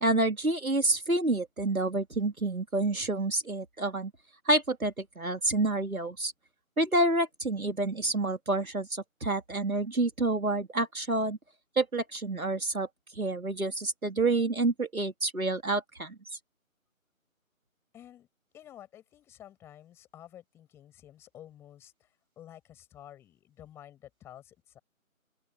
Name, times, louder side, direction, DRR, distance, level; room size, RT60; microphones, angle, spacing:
voice 1, 0.0-4.1 4.5-6.3 6.8-11.4 11.8-12.9 13.1-16.2, right 2 dB, 80° right, 3.0 m, -28 dB
voice 2, 17.9-18.3 18.5-22.1 22.4-24.8, left 11 dB, 5° left, 8.0 m, -51 dB
open air
figure-of-eight pair, 160°, 41 cm